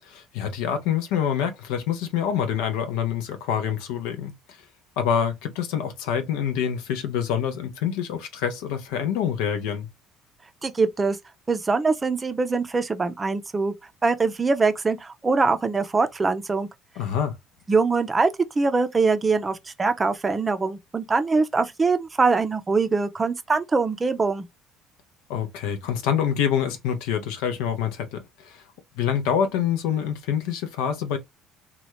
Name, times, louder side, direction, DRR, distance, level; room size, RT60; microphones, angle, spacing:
voice 1, 0.0-4.6 5.0-9.9 17.0-17.3 25.3-28.6 29.0-31.2, left 8 dB, 65° left, 0.6 m, -26 dB
voice 2, 10.6-11.2 11.5-13.7 14.0-16.7 17.7-18.3 18.6-24.4, right 4 dB, 25° right, 0.5 m, -23 dB
2.9 x 2.4 x 3.0 m
figure-of-eight pair, 55°, 0 cm